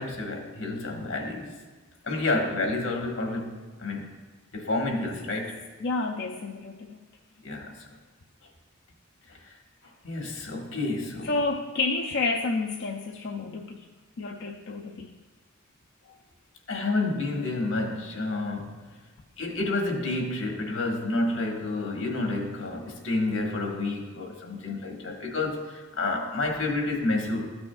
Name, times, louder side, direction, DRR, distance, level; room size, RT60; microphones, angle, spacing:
voice 1, 0.0-1.6 2.0-4.2 4.5-5.6 7.4-7.7 9.3-9.5 10.0-11.4 16.7-19.0 19.4-27.5, left 2 dB, 80° left, 1 dB, 1.4 m, -30 dB
voice 2, 5.8-7.0 11.2-13.9 14.2-15.1, left 3 dB, 55° left, 2 dB, 0.4 m, -30 dB
13.5 x 6.1 x 2.3 m, 1.4 s
head